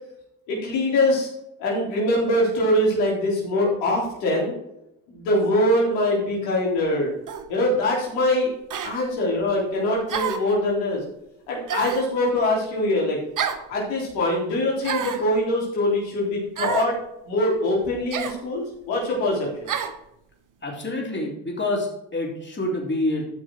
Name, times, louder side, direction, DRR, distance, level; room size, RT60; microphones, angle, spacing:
voice 1, 0.5-1.3 1.6-4.5 5.1-7.1 7.5-8.5 8.8-11.0 11.5-13.2 13.7-17.0 17.3-19.5, left 1 dB, 80° left, -4 dB, 3.9 m, -23 dB
sound 1, 7.3-7.5 8.7-8.9 10.1-10.5 11.7-12.1 13.4-13.7 14.8-15.3 16.6-16.9 18.1-18.4 19.7-20.0, right 7 dB, 45° right, 1.2 m, -28 dB
voice 2, 20.6-23.3, left 2 dB, 25° left, -1 dB, 3.9 m, -27 dB
12.5 x 6.2 x 4.6 m, 0.84 s
hypercardioid pair, 60°, 44 cm